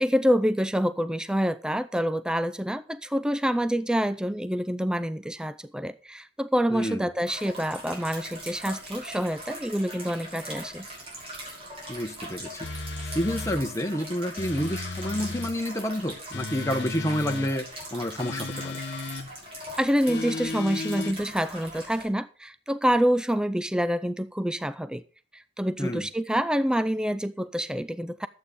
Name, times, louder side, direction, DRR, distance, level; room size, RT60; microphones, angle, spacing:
voice 1, 0.0-10.9 19.8-25.0 25.3-28.3, equal, 5° right, 0.5 m, -27 dB
voice 2, 6.7-7.0 11.9-12.7 13.1-17.7 17.9-18.8 25.8-26.1, equal, 15° left, 1.2 m, -29 dB
sound 1, 7.2-22.1, equal, 35° right, 6.5 m, -41 dB
sound 2, 12.6-13.6 14.4-15.5 16.3-17.5 18.2-19.3 20.1-21.2, left 3 dB, 80° left, 1.1 m, -35 dB
12.0 x 8.5 x 5.2 m
head